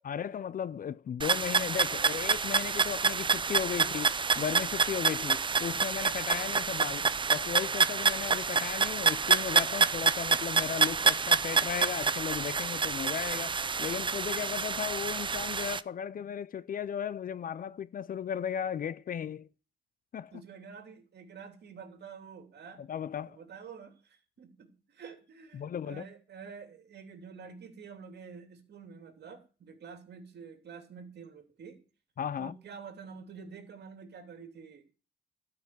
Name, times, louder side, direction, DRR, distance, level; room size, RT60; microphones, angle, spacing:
voice 1, 0.0-19.5 20.1-20.3 22.8-23.4 25.5-26.1 32.2-32.5, left 8 dB, 45° left, 0.5 m, -36 dB
sound 1, 1.2-15.8, right 5 dB, 25° right, 0.6 m, -28 dB
voice 2, 20.3-22.8 23.3-31.8 32.4-34.9, right 6 dB, 55° right, 3.0 m, -48 dB
13.0 x 5.9 x 9.3 m
cardioid pair, 90°, 20 cm